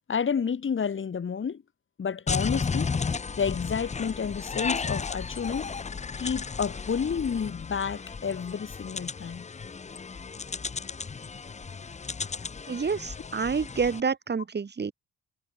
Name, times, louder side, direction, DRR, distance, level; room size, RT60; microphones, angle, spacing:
voice 1, 0.1-1.6 2.0-2.9 3.4-5.7 6.2-9.5, left 6 dB, 40° left, 3.0 m, -30 dB
sound 1, 2.3-14.0, left 5 dB, 25° left, 0.8 m, -34 dB
voice 2, 12.7-14.9, right 5 dB, 35° right, 3.3 m, -28 dB
cardioid pair, 90°, 30 cm